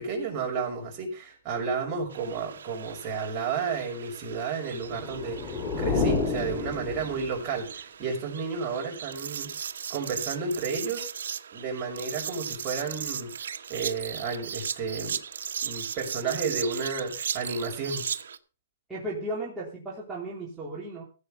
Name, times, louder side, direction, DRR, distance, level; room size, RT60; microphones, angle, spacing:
voice 1, 0.0-9.5 9.9-11.1 11.5-15.2 15.6-18.1, right 5 dB, 25° right, -1 dB, 5.5 m, -32 dB
sound 1, 2.1-18.4, right 7 dB, 80° right, 1.2 m, -37 dB
sound 2, 4.8-7.5, left 3 dB, 25° left, 2.5 m, -29 dB
voice 2, 18.9-21.0, right 1 dB, 5° right, -7 dB, 3.1 m, -35 dB
16.0 x 7.8 x 5.5 m, 0.35 s
hypercardioid pair, 155°, 0 cm